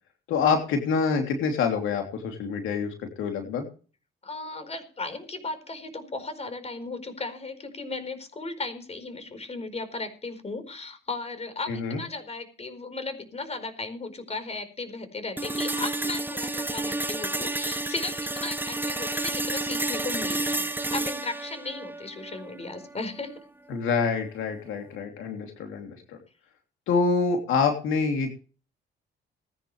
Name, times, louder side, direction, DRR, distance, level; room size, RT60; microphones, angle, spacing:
voice 1, 0.3-3.7 11.7-12.0 23.7-26.2 26.9-28.3, left 5 dB, 85° left, 3 dB, 3.2 m, -26 dB
voice 2, 4.2-23.4, left 3 dB, 30° left, 10 dB, 4.6 m, -36 dB
sound 1, 15.4-23.4, right 2 dB, 10° right, 1.0 m, -31 dB
20.0 x 11.0 x 3.3 m, 0.37 s
cardioid pair, 90°, 20 cm